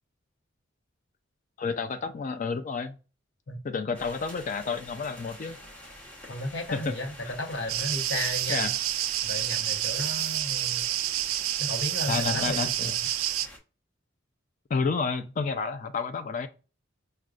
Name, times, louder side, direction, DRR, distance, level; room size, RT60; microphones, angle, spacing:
voice 1, 1.6-3.0 3.6-5.6 6.7-6.9 8.5-8.7 12.1-12.9 14.7-16.5, left 5 dB, 40° left, 0.3 m, -30 dB
sound 1, 3.9-13.6, left 1 dB, 10° left, 0.8 m, -47 dB
voice 2, 6.3-8.7 9.2-10.9 11.6-13.0, left 1 dB, 60° left, 0.9 m, -34 dB
sound 2, 7.7-13.5, right 13 dB, 90° right, 0.3 m, -29 dB
6.1 x 2.2 x 2.4 m
head